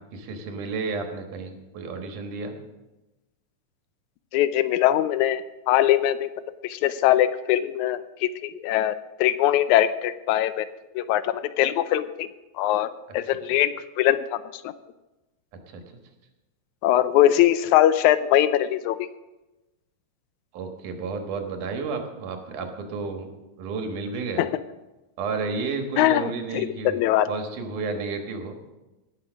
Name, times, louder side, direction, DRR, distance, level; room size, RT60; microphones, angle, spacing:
voice 1, 0.1-2.5 15.7-15.8 20.5-23.3 23.6-24.5 25.2-27.0 27.3-28.6, right 4 dB, 90° right, 5 dB, 3.0 m, -31 dB
voice 2, 4.3-5.4 5.7-6.3 6.6-10.7 11.0-12.3 12.6-12.9 13.1-14.7 16.8-19.1 24.4-24.5 26.0-27.3, left 12 dB, 80° left, 14 dB, 1.9 m, -22 dB
18.0 x 6.0 x 6.2 m, 1.1 s
omnidirectional pair, 3.5 m